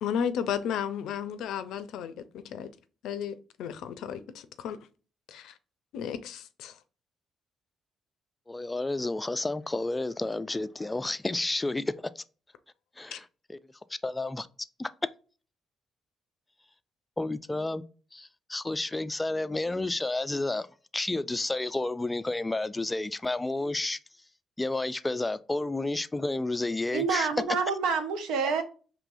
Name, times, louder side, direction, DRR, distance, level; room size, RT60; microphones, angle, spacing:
voice 1, 0.0-2.7 3.0-4.8 5.3-5.6 5.9-6.8 13.1-13.2, left 8 dB, 85° left, 0.4 m, -34 dB
voice 2, 8.5-12.2 13.0-13.2 13.5-13.6 13.9-14.9 17.2-17.8 18.1-20.7 20.9-24.0 24.6-27.3, left 2 dB, 15° left, 0.3 m, -31 dB
voice 3, 26.9-28.6, right 5 dB, 90° right, 0.7 m, -27 dB
4.7 x 3.0 x 2.6 m
cardioid pair, 90°, 0 cm